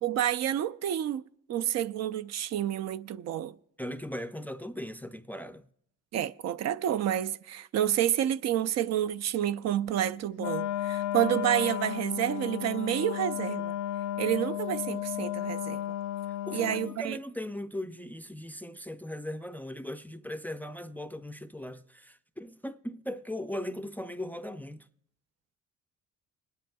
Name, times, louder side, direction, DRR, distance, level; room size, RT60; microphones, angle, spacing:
voice 1, 0.0-1.2 1.5-3.6 6.1-13.7 14.2-15.8 16.5-17.2, right 11 dB, 60° right, 0.4 m, -29 dB
voice 2, 3.8-5.7 16.5-24.9, left 1 dB, 5° left, 0.4 m, -38 dB
Wind instrument woodwind instrument, 10.4-17.0, left 12 dB, 90° left, 0.5 m, -33 dB
29.5 x 10.5 x 2.3 m
cardioid pair, 90°, 30 cm